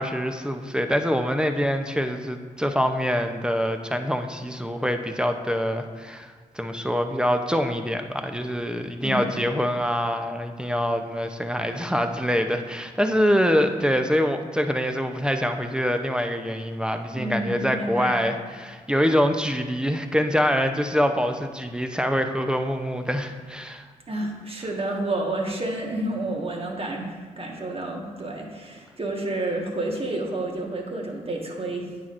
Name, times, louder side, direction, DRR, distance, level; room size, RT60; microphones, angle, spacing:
voice 1, 0.0-23.8, equal, 5° right, 6 dB, 0.7 m, -25 dB
voice 2, 9.0-9.3 17.2-18.2 24.1-31.9, right 2 dB, 40° right, 0 dB, 1.5 m, -30 dB
9.0 x 6.0 x 2.6 m, 1.6 s
supercardioid pair, 45°, 16 cm